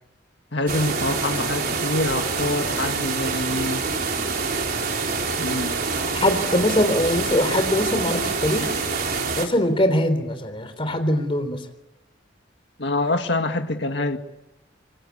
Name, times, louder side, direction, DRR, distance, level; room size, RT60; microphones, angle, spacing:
voice 1, 0.5-3.9 5.4-5.8 12.8-14.2, left 2 dB, 65° left, 1.9 m, -26 dB
sound 1, 0.7-9.5, right 4 dB, 50° right, 4.2 m, -26 dB
voice 2, 6.0-8.8 9.4-11.7, left 1 dB, 30° left, 3.7 m, -22 dB
27.5 x 26.0 x 8.4 m
head